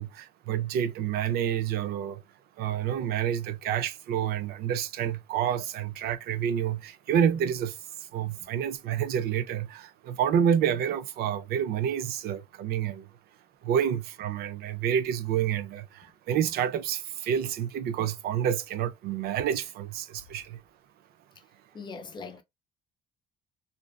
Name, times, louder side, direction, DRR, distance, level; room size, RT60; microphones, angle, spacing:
voice 1, 0.0-2.2 2.6-7.7 8.1-13.0 13.6-20.6, right 9 dB, 65° right, 0.4 m, -28 dB
voice 2, 21.7-22.4, left 4 dB, 25° left, 0.5 m, -41 dB
2.5 x 2.3 x 2.2 m
cardioid pair, 110°, 17 cm